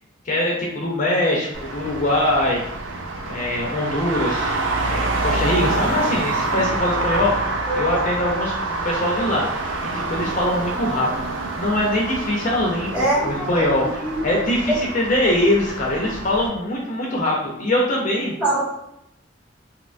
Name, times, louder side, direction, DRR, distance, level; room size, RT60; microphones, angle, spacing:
voice 1, 0.2-2.6 3.3-4.5 4.8-9.7 9.9-11.1 11.6-18.4, left 1 dB, 45° left, -3 dB, 0.5 m, -22 dB
Traffic noise roadway noise, 1.5-16.5, right 3 dB, 90° right, 0.4 m, -27 dB
voice 2, 7.7-8.0 12.9-13.6 14.0-14.2 18.4-18.7, right 1 dB, 5° right, -7 dB, 1.0 m, -23 dB
2.8 x 2.1 x 2.4 m, 0.80 s
head